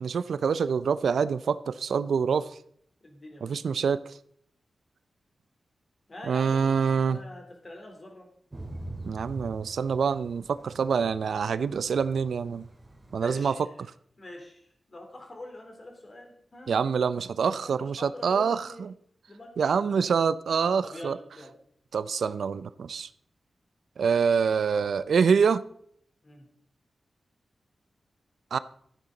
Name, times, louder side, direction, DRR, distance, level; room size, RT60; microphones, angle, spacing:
voice 1, 0.0-2.5 3.4-4.0 6.3-7.2 9.0-12.6 13.1-13.5 16.7-18.6 19.6-21.2 21.9-23.1 24.0-25.6 28.5-28.6, right 6 dB, 85° right, 16 dB, 0.4 m, -25 dB
voice 2, 3.0-3.7 6.1-8.3 13.2-13.9 14.2-16.8 17.5-18.9 19.3-20.1 20.8-21.6 26.2-26.5, left 1 dB, 40° left, 2 dB, 3.5 m, -45 dB
Thunder / Rain, 8.5-13.5, right 2 dB, 25° right, 2.3 m, -44 dB
13.5 x 9.7 x 3.9 m, 0.67 s
wide cardioid pair, 90°, 0 cm